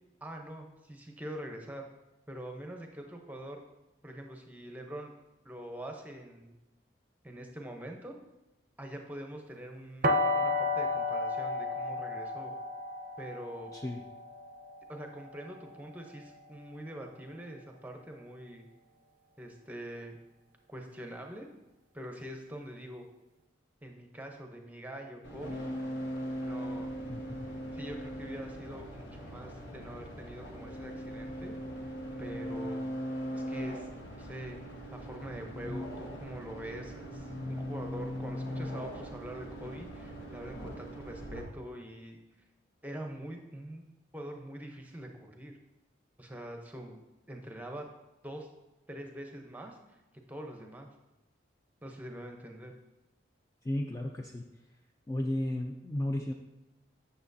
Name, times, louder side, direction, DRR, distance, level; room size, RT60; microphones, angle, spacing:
voice 1, 0.2-1.8 2.3-3.6 4.0-5.1 5.4-6.5 7.2-8.1 8.8-12.5 13.2-13.7 14.9-18.7 19.4-20.2 20.7-21.5 21.9-23.1 23.8-25.6 26.5-27.0 27.7-31.5 32.2-32.9 33.3-33.9 34.2-42.2 42.8-43.8 44.1-45.5 46.2-47.0 47.3-47.9 48.2-48.5 48.9-50.0 50.3-50.9 51.8-52.7, right 1 dB, 10° right, 3 dB, 0.7 m, -44 dB
sound 1, 10.0-15.9, left 2 dB, 45° right, 0.5 m, -32 dB
voice 2, 13.7-14.0 27.1-27.2 53.6-54.4 55.1-56.3, left 1 dB, 15° left, 1 dB, 0.3 m, -33 dB
sound 2, 25.2-41.4, equal, 70° left, 1.3 m, -40 dB
8.7 x 6.6 x 2.7 m, 1.0 s
head